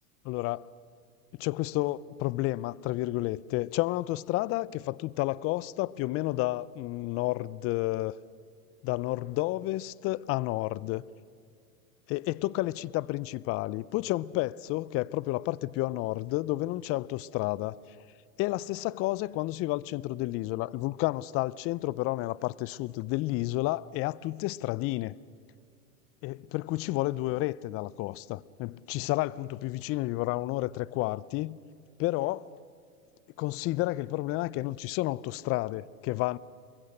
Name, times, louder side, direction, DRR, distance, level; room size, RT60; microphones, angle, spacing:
voice 1, 0.2-0.6 1.4-8.2 8.8-11.0 12.1-17.8 18.4-25.1 26.2-31.6 32.0-32.5 33.4-36.4, left 18 dB, 30° left, 0.5 m, -31 dB
29.0 x 22.5 x 6.6 m
hypercardioid pair, 105°, 44 cm